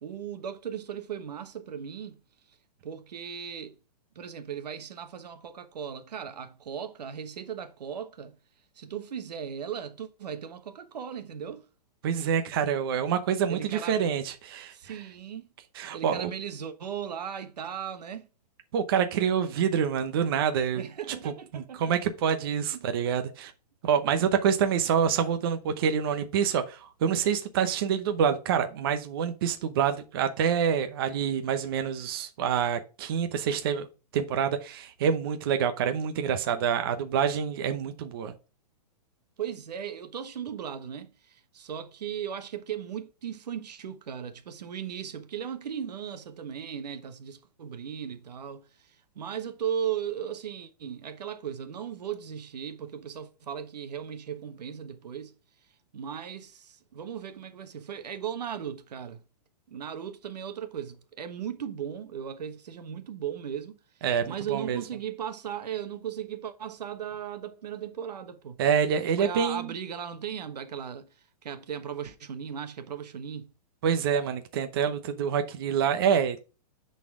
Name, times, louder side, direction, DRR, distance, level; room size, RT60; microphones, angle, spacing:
voice 1, 0.0-2.2 2.8-3.7 4.1-8.4 8.8-11.6 13.5-14.1 14.7-15.5 15.9-18.3 20.7-21.8 22.7-22.8 39.4-55.3 55.9-59.2 59.7-63.8 64.3-68.6 69.0-71.1 71.4-73.5, right 8 dB, 85° right, 1.2 m, -37 dB
voice 2, 12.0-14.9 15.8-16.3 18.7-20.8 21.5-23.5 23.8-33.9 34.1-38.3 64.0-64.8 68.6-69.7 73.8-76.4, right 7 dB, 35° right, 0.8 m, -27 dB
9.6 x 4.2 x 3.6 m
hypercardioid pair, 175°, 20 cm